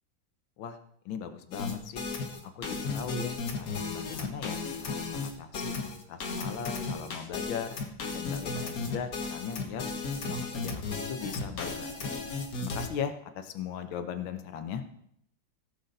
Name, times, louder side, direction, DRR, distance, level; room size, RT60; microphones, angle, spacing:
voice 1, 1.0-2.0 2.6-5.7 6.1-7.8 8.1-9.9 10.2-12.1 12.5-14.8, left 7 dB, 90° left, 8 dB, 1.7 m, -38 dB
sound 1, 1.5-12.9, left 4 dB, 50° left, 1.6 m, -35 dB
17.0 x 6.7 x 4.0 m, 0.72 s
omnidirectional pair, 2.1 m